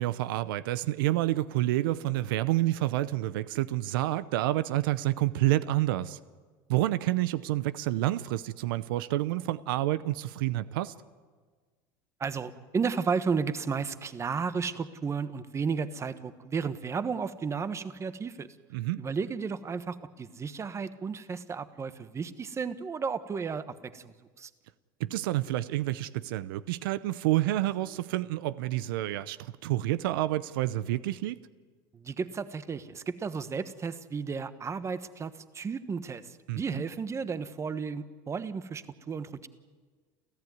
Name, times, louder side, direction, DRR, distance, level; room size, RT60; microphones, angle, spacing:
voice 1, 0.0-6.2 6.7-10.9 18.7-19.0 25.0-31.4 36.5-36.8, right 15 dB, 90° right, 0.7 m, -29 dB
voice 2, 12.2-18.5 19.0-24.5 31.9-39.5, right 5 dB, 25° right, 1.2 m, -33 dB
30.0 x 14.0 x 9.4 m
supercardioid pair, 110°, 11 cm